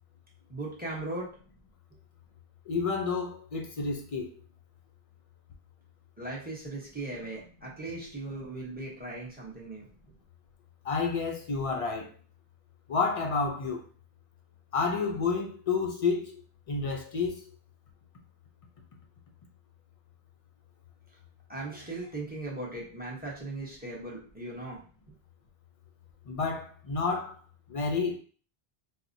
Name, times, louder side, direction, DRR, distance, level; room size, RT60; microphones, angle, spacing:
voice 1, 0.5-1.3 6.2-9.9 21.5-24.8, right 2 dB, 10° right, 0.8 m, -38 dB
voice 2, 2.7-4.3 10.8-12.1 12.9-13.8 14.7-16.4 16.7-17.4 26.3-27.4 27.7-28.2, left 4 dB, 50° left, 0.4 m, -30 dB
4.1 x 2.0 x 2.6 m
omnidirectional pair, 1.0 m